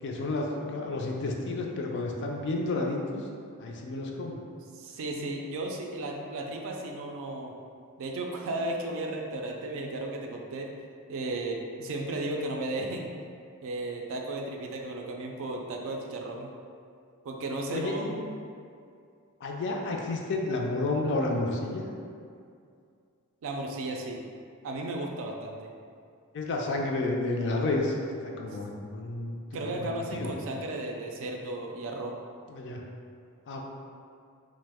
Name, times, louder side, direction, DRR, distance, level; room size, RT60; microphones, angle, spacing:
voice 1, 0.0-3.2 3.6-4.4 17.7-18.1 19.4-21.8 26.3-27.9 28.2-29.4 29.7-30.3 32.5-32.8 33.5-33.7, left 2 dB, 55° left, 0 dB, 0.4 m, -31 dB
voice 2, 4.7-7.5 8.0-10.7 11.1-13.2 13.6-16.5 17.2-18.3 23.4-24.2 24.6-25.7 29.5-32.2, right 2 dB, 60° right, 1 dB, 0.4 m, -34 dB
3.0 x 2.1 x 3.4 m, 2.3 s
head